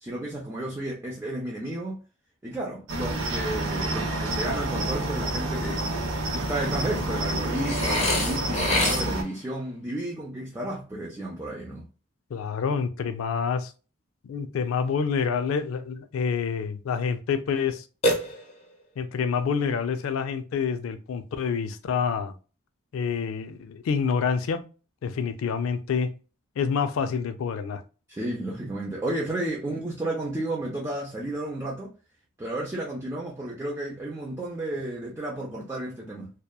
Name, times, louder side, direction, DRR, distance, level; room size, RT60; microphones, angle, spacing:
voice 1, 0.0-2.0 2.4-5.9 6.3-11.9 28.1-31.9 32.4-36.3, right 1 dB, 15° right, 0.4 m, -32 dB
Cricket, 2.9-9.2, right 1 dB, 75° right, 0.6 m, -29 dB
Burping eructation, 7.7-9.4 18.0-18.8, left 1 dB, 30° left, 0.6 m, -26 dB
voice 2, 12.3-13.7 14.2-17.8 19.0-22.3 22.9-24.6 25.0-26.1 26.6-27.8, left 6 dB, 80° left, 0.3 m, -27 dB
2.7 x 2.1 x 2.2 m
head